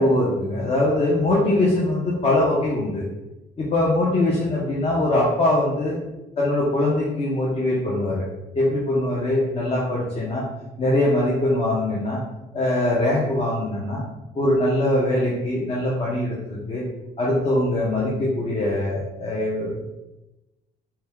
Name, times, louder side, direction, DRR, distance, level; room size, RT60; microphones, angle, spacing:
voice 1, 0.0-3.1 3.6-6.0 6.4-8.2 8.5-10.5 10.8-12.2 12.5-14.0 14.3-16.8 17.2-19.8, left 1 dB, 35° left, -5 dB, 0.8 m, -22 dB
4.3 x 2.3 x 3.5 m, 0.98 s
cardioid pair, 110°, 17 cm